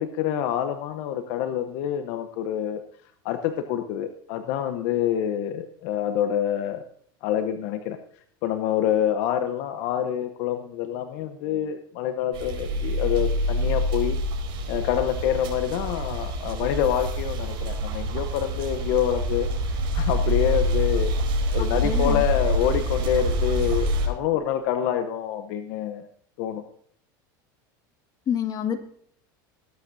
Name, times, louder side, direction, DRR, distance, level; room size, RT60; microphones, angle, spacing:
voice 1, 0.0-2.8 3.2-6.8 7.2-8.0 8.4-14.2 14.7-19.5 19.9-21.1 21.5-26.1 26.4-26.6, left 10 dB, 65° left, 8 dB, 1.0 m, -26 dB
sound 1, 12.3-24.1, equal, 55° right, 4.7 m, -26 dB
voice 2, 21.8-22.2 28.3-28.8, left 8 dB, 35° left, 6 dB, 1.8 m, -27 dB
21.0 x 8.7 x 2.7 m, 0.63 s
supercardioid pair, 120°, 11 cm